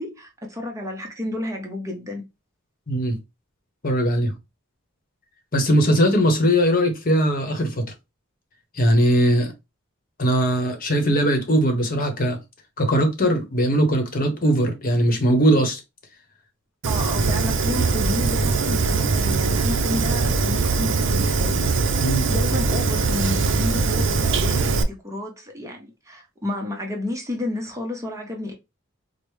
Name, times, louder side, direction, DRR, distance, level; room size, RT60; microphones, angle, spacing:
voice 1, 0.0-2.2 16.9-28.5, left 1 dB, 15° right, 0.7 m, -31 dB
voice 2, 2.9-3.2 3.8-4.3 5.5-7.9 8.7-9.5 10.2-12.4 12.8-15.8 17.7-17.8 22.0-22.3, equal, 40° left, 0.9 m, -20 dB
Fire, 16.8-24.8, right 4 dB, 60° right, 0.5 m, -21 dB
4.8 x 2.0 x 3.1 m
head